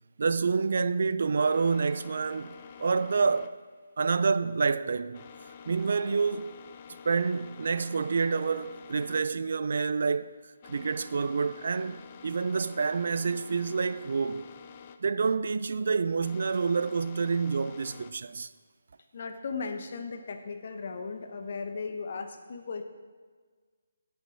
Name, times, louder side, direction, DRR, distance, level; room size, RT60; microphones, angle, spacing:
voice 1, 0.2-3.6 4.0-5.3 5.7-6.5 7.1-10.3 10.6-14.5 15.0-18.5, right 5 dB, 60° right, 0.4 m, -28 dB
sound 1, 1.4-18.1, left 7 dB, 35° left, 0.6 m, -49 dB
voice 2, 19.1-22.8, left 4 dB, 50° left, 1.2 m, -36 dB
17.0 x 6.9 x 4.4 m
figure-of-eight pair, 150°, 0 cm